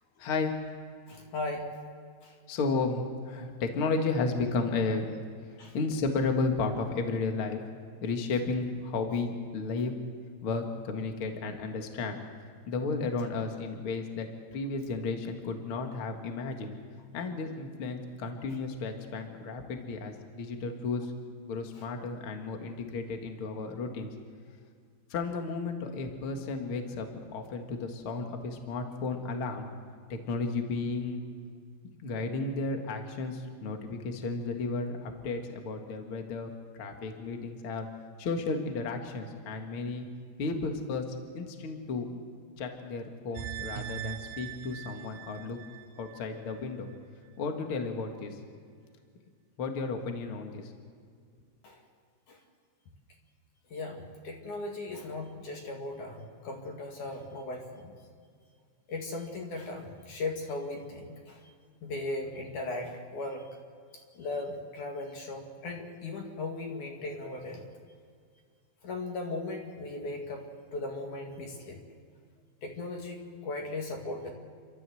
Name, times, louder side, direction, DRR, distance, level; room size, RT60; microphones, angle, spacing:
voice 1, 0.2-0.5 2.5-5.1 5.7-7.6 8.0-9.9 10.4-12.3 12.7-16.7 17.1-21.1 21.5-24.1 25.1-29.7 30.1-31.2 32.0-36.5 36.8-37.9 38.2-40.1 40.4-41.0 41.3-42.2 42.6-45.6 46.0-46.9 47.4-48.4 49.6-50.7, left 3 dB, 80° left, 4 dB, 1.2 m, -33 dB
voice 2, 1.1-1.7 2.2-2.3 5.6-5.8 51.6-51.8 52.3-52.4 53.7-58.0 58.9-61.4 61.8-63.4 64.1-67.6 68.8-70.4 70.7-71.8 72.6-74.3, left 2 dB, 50° left, 1 dB, 2.9 m, -37 dB
sound 1, 43.4-46.6 46.9-47.0, right 12 dB, 75° right, 2.7 m, -41 dB
30.0 x 13.0 x 7.8 m, 2.1 s
omnidirectional pair, 5.5 m